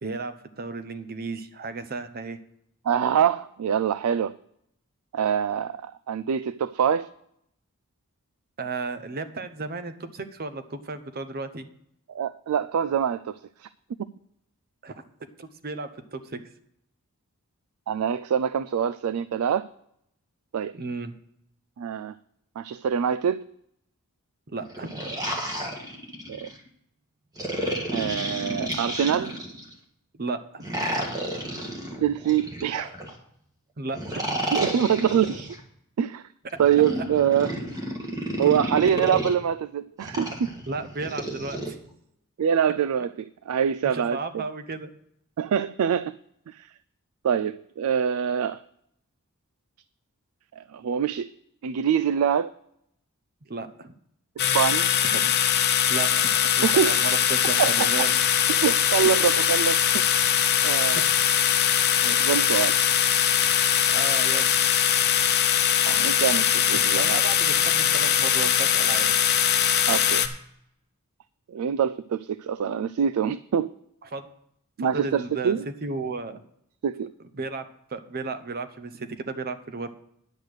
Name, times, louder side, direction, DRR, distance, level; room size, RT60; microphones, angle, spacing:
voice 1, 0.0-2.4 8.6-11.7 14.8-14.9 15.4-16.4 20.7-21.1 24.5-25.2 30.1-30.7 33.8-34.2 40.7-41.8 43.8-44.9 53.5-53.9 55.0-55.3 55.9-58.1 60.9-61.0 63.9-64.5 66.7-69.1 74.1-74.3 74.8-76.4 77.3-79.9, right 3 dB, 45° right, 11 dB, 0.8 m, -34 dB
voice 2, 2.8-4.4 5.1-7.1 12.1-13.7 17.9-19.7 20.5-20.7 21.8-22.1 22.6-23.5 26.3-26.5 27.9-29.3 32.0-32.9 34.5-35.6 36.0-36.2 36.6-37.6 38.4-40.5 42.4-44.2 45.4-46.2 46.5-46.7 47.2-48.6 50.6-51.3 51.6-52.5 54.5-54.9 56.6-56.9 57.6-58.1 58.6-60.1 60.6-61.0 62.0-62.8 65.8-67.2 69.9-70.2 71.5-73.7 74.8-75.6 76.8-77.1, right 8 dB, 75° right, 14 dB, 0.3 m, -25 dB
sound 1, 24.6-26.5 27.4-29.7 30.6-33.1 33.9-35.6 36.5-39.3 40.0-41.7, right 1 dB, 15° right, 1.6 m, -31 dB
sound 2, 54.4-70.3, left 9 dB, 45° left, 0.8 m, -21 dB
10.5 x 6.6 x 6.4 m, 0.73 s
head